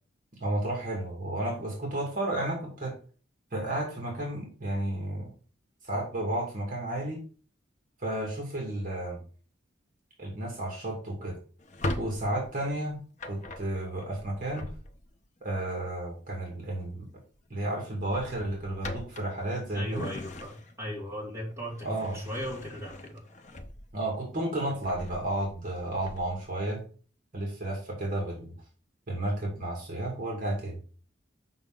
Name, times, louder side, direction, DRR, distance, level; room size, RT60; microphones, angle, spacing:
voice 1, 0.4-3.0 3.5-5.3 5.8-7.2 8.0-9.2 10.2-11.4 12.0-14.6 15.4-17.1 17.5-20.1 21.8-22.2 23.9-26.8 27.3-28.5 29.1-30.8, right 1 dB, 45° right, -1 dB, 2.2 m, -32 dB
Drawer open or close, 11.6-15.3 16.7-17.0 17.4-17.6 18.0-20.9 21.4-24.1 24.5-26.5, left 1 dB, 40° left, 0.7 m, -40 dB
voice 2, 19.7-20.5 20.8-23.2, equal, 15° right, -4 dB, 2.6 m, -37 dB
6.9 x 5.5 x 3.8 m, 0.40 s
head